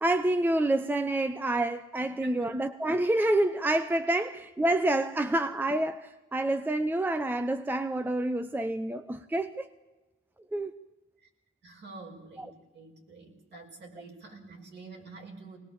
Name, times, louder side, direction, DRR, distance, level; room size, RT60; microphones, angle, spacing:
voice 1, 0.0-9.7 10.5-10.7 12.4-12.5, right 1 dB, 10° right, 0.6 m, -28 dB
voice 2, 2.2-2.5 4.1-4.2 11.2-11.3 11.6-15.6, right 3 dB, 55° right, 5.2 m, -47 dB
22.0 x 19.5 x 7.2 m
cardioid pair, 145°, 21 cm